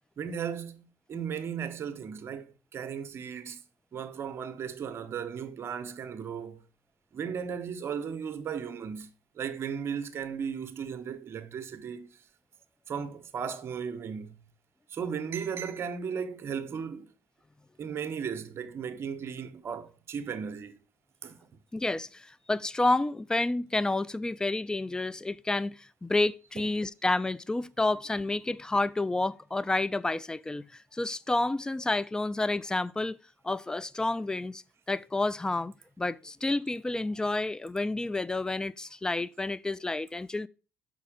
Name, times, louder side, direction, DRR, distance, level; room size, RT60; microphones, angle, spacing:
voice 1, 0.2-3.6 3.9-6.6 7.1-9.1 9.3-12.1 12.9-14.4 14.9-17.1 17.8-20.8 21.2-21.4 26.6-26.7, right 7 dB, 50° right, 0.9 m, -36 dB
voice 2, 21.7-30.6 30.9-33.2 33.4-34.6 34.9-40.5, left 2 dB, 15° left, 0.4 m, -30 dB
5.9 x 4.1 x 4.9 m
supercardioid pair, 70°, 5 cm